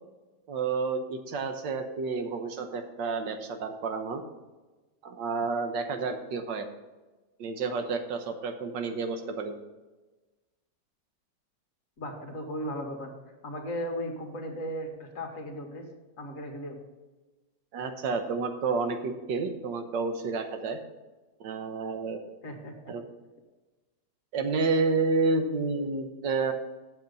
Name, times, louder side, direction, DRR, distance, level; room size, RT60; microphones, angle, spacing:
voice 1, 0.5-4.2 5.0-6.7 7.4-9.5 17.7-20.8 21.4-22.2 22.9-23.0 24.3-26.5, right 4 dB, 90° right, 6 dB, 1.6 m, -30 dB
voice 2, 12.0-13.1 13.4-15.9 16.2-16.8 22.4-22.7, equal, 50° left, 3 dB, 1.8 m, -36 dB
7.8 x 7.3 x 5.4 m, 1.2 s
omnidirectional pair, 1.9 m